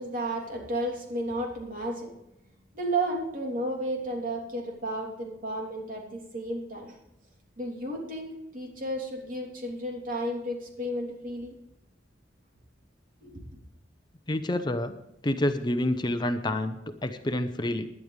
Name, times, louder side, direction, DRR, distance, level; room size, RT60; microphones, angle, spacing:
voice 1, 0.0-2.1 2.7-7.0 7.6-11.5 13.2-13.4, right 1 dB, 50° right, 0 dB, 3.3 m, -33 dB
voice 2, 14.3-15.0 15.2-17.9, left 1 dB, 25° left, 8 dB, 0.7 m, -28 dB
20.0 x 11.0 x 3.4 m, 0.85 s
head